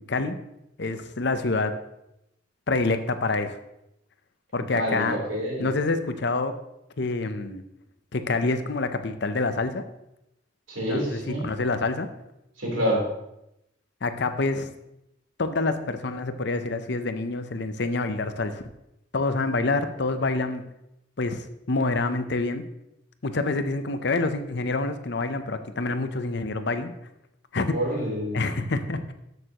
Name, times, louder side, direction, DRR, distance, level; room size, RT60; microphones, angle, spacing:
voice 1, 0.8-1.7 2.7-3.6 4.5-5.2 5.6-6.5 7.0-7.6 8.1-9.8 10.9-12.1 14.0-14.7 15.4-18.6 19.1-20.7 21.2-22.7 23.2-26.9 27.5-27.8 28.3-29.1, left 3 dB, 60° left, 9 dB, 0.7 m, -27 dB
voice 2, 4.5-5.7 10.7-11.5 12.6-13.1 27.7-28.4, equal, 85° right, -3 dB, 3.6 m, -27 dB
13.0 x 6.7 x 3.0 m, 0.85 s
head